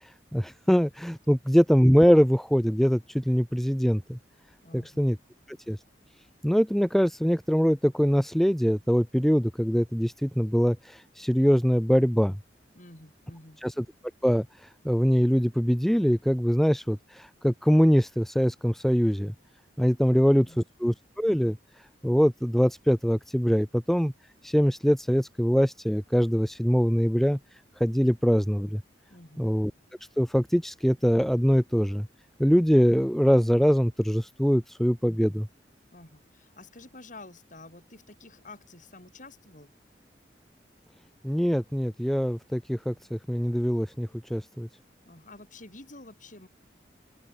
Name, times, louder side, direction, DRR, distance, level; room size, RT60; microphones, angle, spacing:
voice 1, 0.3-4.2 4.7-5.2 5.5-5.8 6.4-12.4 13.6-13.8 14.2-19.3 19.8-21.6 22.0-24.1 24.4-27.4 27.8-28.8 29.4-29.7 30.2-32.1 32.4-35.5 41.2-44.7, equal, ahead, 0.9 m, -23 dB
voice 2, 4.6-5.1 12.7-13.6 20.1-20.6 29.1-29.5 35.9-39.7 45.1-46.5, left 2 dB, 45° left, 5.6 m, -49 dB
open air
head